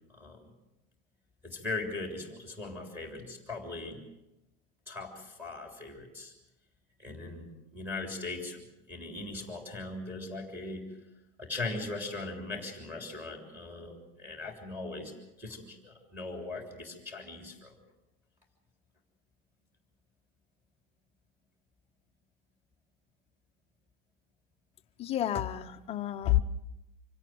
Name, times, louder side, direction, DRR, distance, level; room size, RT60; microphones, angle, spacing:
voice 1, 0.1-0.4 1.4-4.0 4.9-6.3 7.0-11.0 11.4-15.1 15.4-17.7, left 3 dB, 5° right, 3 dB, 3.3 m, -39 dB
voice 2, 25.0-26.4, left 13 dB, 20° left, 7 dB, 0.8 m, -29 dB
25.5 x 17.0 x 7.8 m, 0.95 s
supercardioid pair, 170°, 31 cm